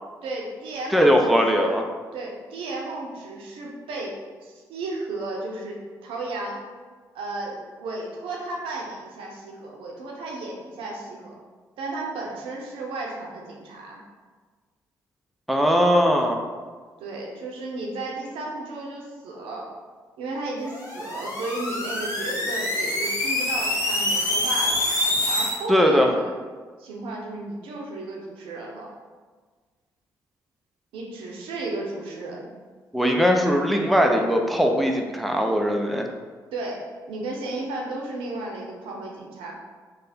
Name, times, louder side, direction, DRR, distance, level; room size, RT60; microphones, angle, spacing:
voice 1, 0.2-1.8 2.1-4.2 4.4-6.6 7.1-11.3 11.8-14.0 17.0-19.6 20.2-24.8 25.3-26.3 26.8-28.9 30.9-32.5 36.5-39.6, right 2 dB, 75° right, -2 dB, 0.7 m, -34 dB
voice 2, 0.9-1.8 15.5-16.4 25.7-26.1 32.9-36.1, equal, ahead, 2 dB, 0.5 m, -20 dB
sound 1, 20.7-25.6, left 1 dB, 35° left, 1.2 m, -26 dB
3.3 x 2.2 x 4.1 m, 1.5 s
hypercardioid pair, 45°, 9 cm